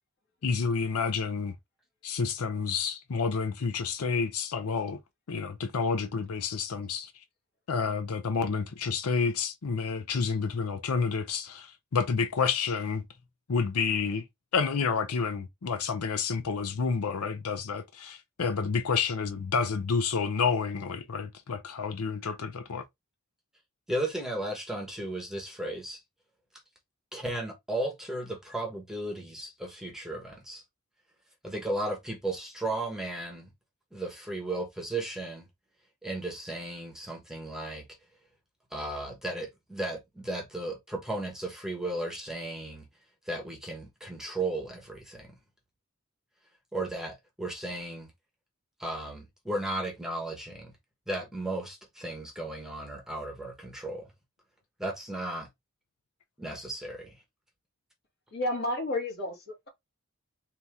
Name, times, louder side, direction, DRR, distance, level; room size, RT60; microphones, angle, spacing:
voice 1, 0.4-1.6 2.0-5.0 5.3-7.1 7.7-13.0 13.5-14.2 14.5-22.8, left 5 dB, 90° left, 0.6 m, -29 dB
voice 2, 23.9-26.0 27.1-30.6 31.4-33.5 33.9-35.5 36.0-37.8 38.7-42.9 43.3-45.4 46.7-48.1 48.8-50.7 51.1-54.1 54.8-55.5 56.4-57.1, right 1 dB, ahead, 1.1 m, -35 dB
voice 3, 58.3-59.7, left 1 dB, 50° left, 2.3 m, -31 dB
4.3 x 2.8 x 3.5 m
head